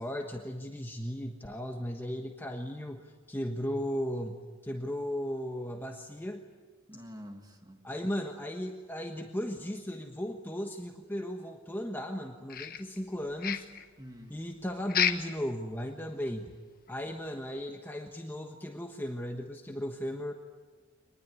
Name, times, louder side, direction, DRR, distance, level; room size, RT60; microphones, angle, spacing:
voice 1, 0.0-6.5 7.8-13.7 14.3-16.5 16.9-20.3, equal, 10° left, 3 dB, 1.3 m, -36 dB
voice 2, 6.9-7.8 14.0-14.4, equal, 15° right, 5 dB, 2.2 m, -47 dB
sound 1, 12.5-13.1 13.4-13.9 14.9-15.4 15.7-15.8 16.3-16.4 16.9-17.0, left 8 dB, 40° left, 1.3 m, -31 dB
25.0 x 20.5 x 9.6 m, 1.3 s
head